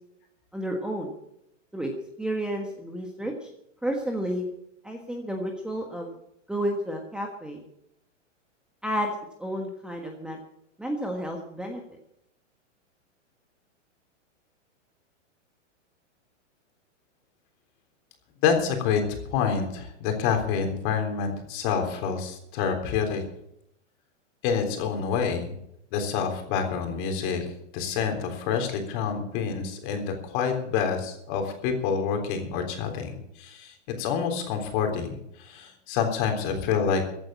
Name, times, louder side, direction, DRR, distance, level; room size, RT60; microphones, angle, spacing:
voice 1, 0.5-1.1 1.7-1.9 2.2-3.5 3.8-4.4 4.8-6.1 6.5-7.6 8.8-9.1 9.4-10.4 10.8-11.8, equal, ahead, 2 dB, 1.4 m, -31 dB
voice 2, 18.4-23.2 24.4-25.5 25.9-37.0, left 6 dB, 40° left, 5 dB, 3.6 m, -27 dB
15.5 x 8.9 x 7.5 m, 0.77 s
hypercardioid pair, 145°, 38 cm